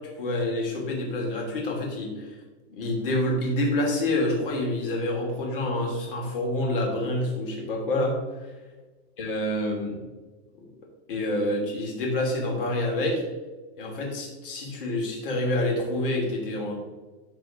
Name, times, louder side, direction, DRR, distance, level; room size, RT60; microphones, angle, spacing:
voice 1, 0.2-2.3 2.7-8.2 9.2-10.0 10.6-10.7 11.1-13.2 13.8-16.7, left 1 dB, 55° left, -1 dB, 2.9 m, -27 dB
13.0 x 4.5 x 3.7 m, 1.2 s
supercardioid pair, 180°, 33 cm